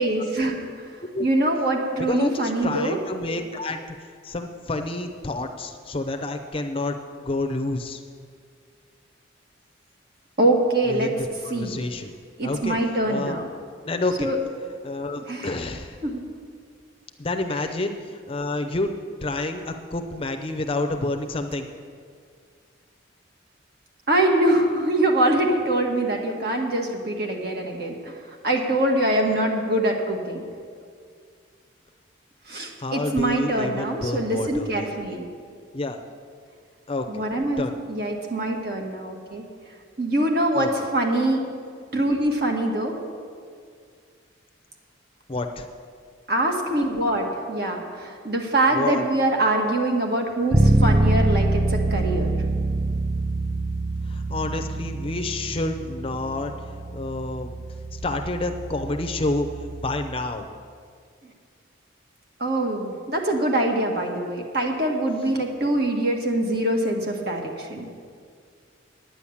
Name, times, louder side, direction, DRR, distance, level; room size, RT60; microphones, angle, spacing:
voice 1, 0.0-3.0 10.4-11.1 11.5-11.8 12.4-13.5 14.2-14.4 15.3-15.5 16.0-16.2 24.1-30.4 32.5-35.2 37.1-39.4 40.0-41.4 41.9-42.9 46.3-52.3 62.4-67.9, right 1 dB, 55° right, 1 dB, 1.6 m, -24 dB
voice 2, 2.1-8.0 10.9-12.1 12.4-12.8 13.1-13.4 13.8-14.3 14.8-16.0 17.2-18.9 19.2-21.7 32.8-34.9 35.7-36.0 36.9-37.2 37.6-37.8 40.5-40.7 45.3-45.6 48.7-49.1 54.1-56.5 56.9-57.6 57.9-60.4, left 2 dB, 30° left, 5 dB, 0.6 m, -29 dB
Bass guitar, 50.5-60.3, right 2 dB, 15° right, 0.4 m, -25 dB
9.8 x 9.1 x 7.1 m, 2.1 s
head